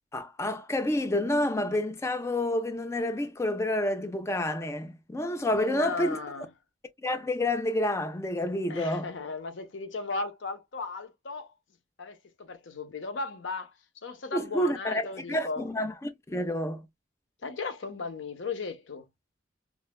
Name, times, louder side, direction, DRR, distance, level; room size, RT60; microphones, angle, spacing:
voice 1, 0.1-6.2 7.0-9.1 14.3-16.8, left 1 dB, 15° left, 0.4 m, -29 dB
voice 2, 5.5-6.5 8.7-11.5 12.0-13.7 14.0-15.6 17.4-19.0, left 4 dB, 85° left, 0.7 m, -36 dB
4.7 x 2.1 x 2.2 m
head